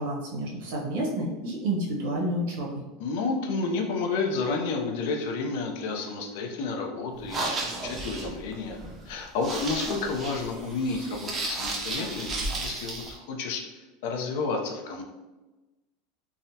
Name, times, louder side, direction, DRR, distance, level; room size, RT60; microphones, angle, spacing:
voice 1, 0.0-2.8, right 1 dB, 70° right, -3 dB, 1.0 m, -30 dB
voice 2, 3.0-8.8 9.1-15.0, left 4 dB, 65° left, 2 dB, 0.5 m, -31 dB
sound 1, 7.2-13.1, right 2 dB, 20° right, 0.5 m, -34 dB
3.5 x 2.1 x 2.7 m, 1.1 s
supercardioid pair, 155°, 0 cm